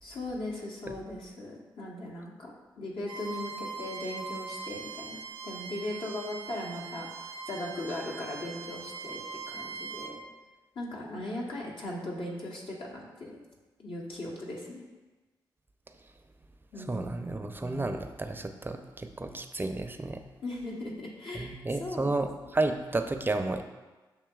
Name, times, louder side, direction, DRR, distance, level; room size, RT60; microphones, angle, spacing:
voice 1, 0.0-2.5 2.8-7.1 7.5-9.2 9.5-10.2 10.7-13.4 13.8-14.8 16.7-17.3 20.4-22.2, left 1 dB, 70° left, -3 dB, 1.0 m, -38 dB
Bowed string instrument, 3.0-10.1, right 5 dB, 85° right, 0.5 m, -41 dB
voice 2, 16.9-20.2 21.3-23.6, right 2 dB, 25° right, 7 dB, 0.4 m, -32 dB
7.3 x 2.8 x 2.3 m, 1.2 s
supercardioid pair, 40°, 9 cm